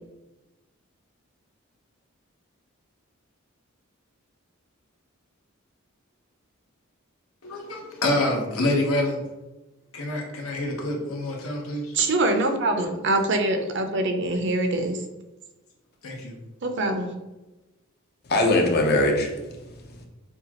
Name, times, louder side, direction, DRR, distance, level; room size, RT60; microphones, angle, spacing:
voice 1, 7.4-9.2 9.9-11.9 14.3-14.4 16.0-16.4, left 1 dB, 75° left, 1.0 m, -27 dB
voice 2, 11.9-15.0 16.6-17.1, right 2 dB, 55° right, 0.6 m, -24 dB
voice 3, 18.2-20.1, left 1 dB, 50° left, 0.7 m, -23 dB
6.5 x 2.4 x 2.9 m
head